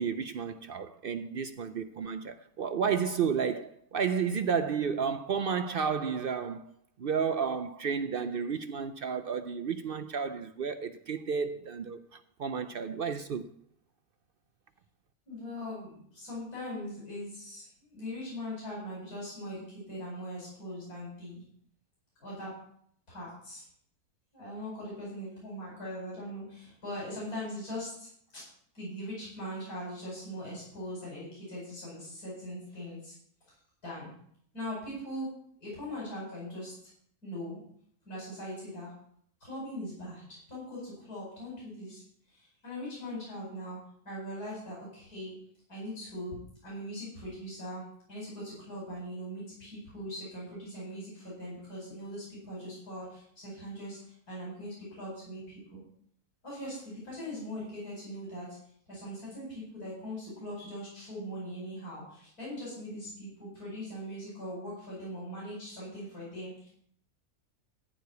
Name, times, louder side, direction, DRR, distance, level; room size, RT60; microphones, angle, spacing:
voice 1, 0.0-6.6 7.0-13.5, right 6 dB, 65° right, 0.5 m, -32 dB
voice 2, 15.3-21.4 22.2-22.5 23.1-23.6 24.3-28.4 28.7-33.1 33.8-34.1 34.5-35.3 35.6-36.7 37.2-37.6 38.1-38.9 39.4-42.0 42.3-43.8 44.0-45.4 45.7-46.4 46.6-47.8 48.1-55.8 56.4-58.6 58.9-66.8, equal, 85° left, 5.6 m, -41 dB
14.0 x 4.8 x 8.1 m
omnidirectional pair, 1.6 m